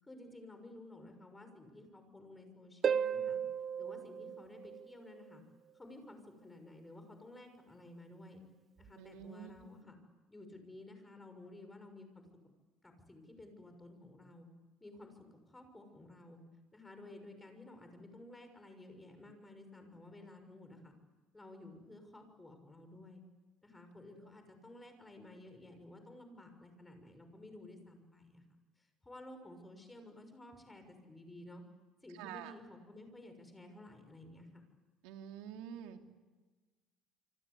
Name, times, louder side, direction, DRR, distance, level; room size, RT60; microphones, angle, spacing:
voice 1, 0.0-3.4 3.8-5.4 5.7-8.4 8.8-10.0 10.3-12.2 12.8-14.5 14.8-16.4 16.7-20.9 21.3-23.2 23.6-28.4 28.8-31.6 32.0-34.6, left 2 dB, 10° left, 7 dB, 6.3 m, -54 dB
Harp, 2.8-5.3 8.8-8.9, right 7 dB, 35° right, 1.1 m, -35 dB
voice 2, 9.0-9.5 32.1-32.5 35.0-36.0, right 10 dB, 85° right, 4 dB, 3.3 m, -47 dB
27.5 x 25.5 x 8.5 m, 1.3 s
cardioid pair, 130°, 0 cm